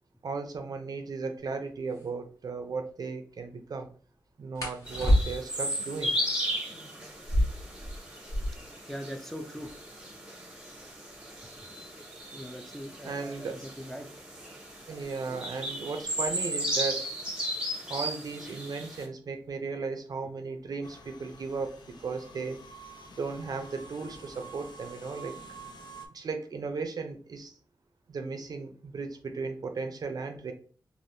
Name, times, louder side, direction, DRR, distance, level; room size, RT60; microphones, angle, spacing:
voice 1, 0.2-3.9 4.4-6.2 13.0-13.6 14.9-17.1 17.9-22.6 23.2-25.4 26.1-27.6 28.1-30.5, right 4 dB, 60° right, 6 dB, 0.5 m, -36 dB
sound 1, 1.9-2.1 4.5-5.7 7.1-8.8 9.1-9.2 9.4-10.0 10.6-13.1 14.2-14.5 14.9-15.3 15.7-16.4, equal, 45° left, 1.4 m, -30 dB
sound 2, 4.9-19.1, equal, 10° right, 0.8 m, -36 dB
voice 2, 8.9-9.7 11.8-11.9 12.3-14.1, equal, 5° left, 4 dB, 0.4 m, -41 dB
sound 3, 20.8-26.1, right 3 dB, 70° left, 0.5 m, -48 dB
3.3 x 2.5 x 2.6 m, 0.41 s
wide cardioid pair, 100°, 8 cm